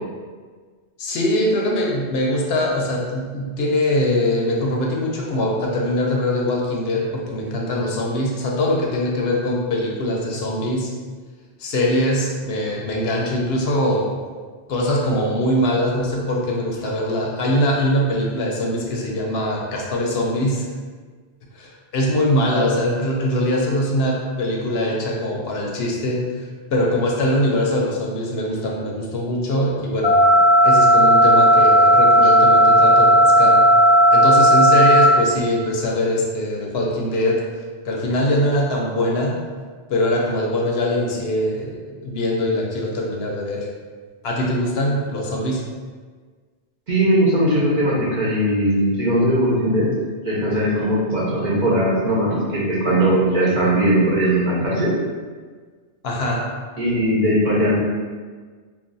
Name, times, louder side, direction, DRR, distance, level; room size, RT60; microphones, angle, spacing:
voice 1, 1.0-10.9 11.6-14.2 14.7-20.7 21.5-30.2 30.6-33.7 34.1-37.5 37.8-39.4 39.9-43.7 44.2-45.7 56.0-56.5, left 1 dB, 70° left, -2 dB, 0.7 m, -22 dB
sound 1, 30.0-35.0, equal, 40° left, 0.3 m, -13 dB
voice 2, 46.9-49.9 50.2-54.9 56.8-57.8, right 1 dB, 45° right, -7 dB, 0.8 m, -19 dB
2.4 x 2.3 x 3.8 m, 1.5 s
omnidirectional pair, 1.1 m